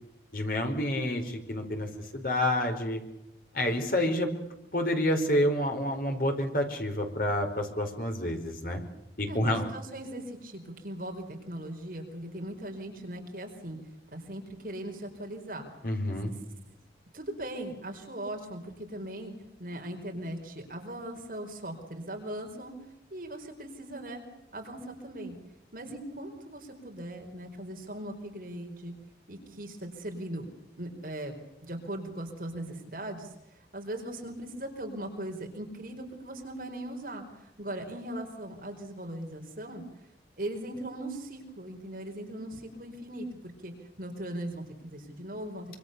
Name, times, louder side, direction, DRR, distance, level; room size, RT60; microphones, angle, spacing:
voice 1, 0.3-3.0 3.5-4.3 4.7-8.8 9.2-9.7 15.8-16.3, left 1 dB, 50° left, 4 dB, 4.9 m, -28 dB
voice 2, 9.3-13.8 14.1-15.7 16.7-16.8 17.1-19.3 19.6-22.7 23.1-24.2 24.5-25.4 25.7-28.9 29.3-30.5 30.8-31.3 31.6-39.8 40.4-45.8, right 1 dB, 50° right, 3 dB, 4.8 m, -39 dB
26.5 x 25.5 x 7.0 m, 0.87 s
head